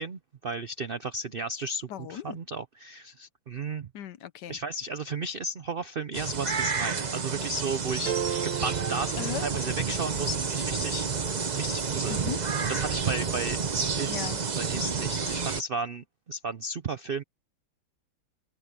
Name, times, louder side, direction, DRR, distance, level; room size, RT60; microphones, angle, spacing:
voice 1, 0.0-3.9 4.5-8.1 8.4-11.1 11.6-12.2 12.7-13.6 14.0-17.2, right 3 dB, 85° right, 0.5 m, -34 dB
voice 2, 1.9-2.4 3.9-4.6 8.3-8.4 9.2-9.4 12.1-12.7 14.1-14.4, left 9 dB, 70° left, 1.3 m, -38 dB
sound 1, 6.1-15.6, right 5 dB, 40° right, 0.6 m, -30 dB
sound 2, 8.1-10.3, right 9 dB, 65° right, 1.5 m, -35 dB
open air
omnidirectional pair, 2.0 m